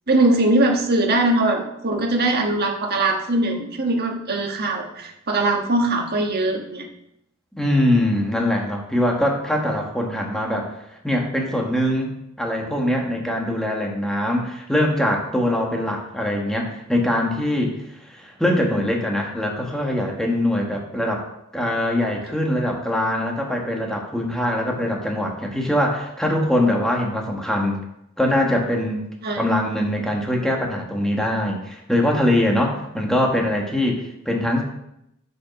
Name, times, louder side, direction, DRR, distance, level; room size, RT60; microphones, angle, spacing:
voice 1, 0.1-6.9 29.2-29.4, right 2 dB, 50° right, 2 dB, 1.4 m, -21 dB
voice 2, 7.5-10.7 11.0-17.8 18.0-21.2 21.5-27.8 28.2-29.1 29.3-34.6, left 1 dB, 5° left, 0 dB, 1.5 m, -22 dB
8.3 x 5.7 x 5.9 m, 0.80 s
head